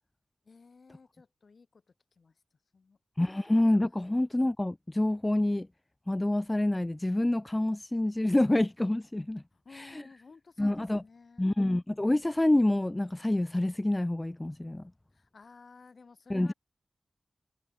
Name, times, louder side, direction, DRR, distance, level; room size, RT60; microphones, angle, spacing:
voice 1, 0.4-1.8 2.1-2.4 2.7-3.0 9.5-11.5 15.1-16.5, left 4 dB, 60° left, 4.8 m, -55 dB
voice 2, 3.2-5.7 6.1-9.4 9.7-10.0 10.6-11.0 11.4-14.8 16.3-16.5, left 1 dB, 15° left, 0.5 m, -27 dB
wide cardioid pair, 105°, 0 cm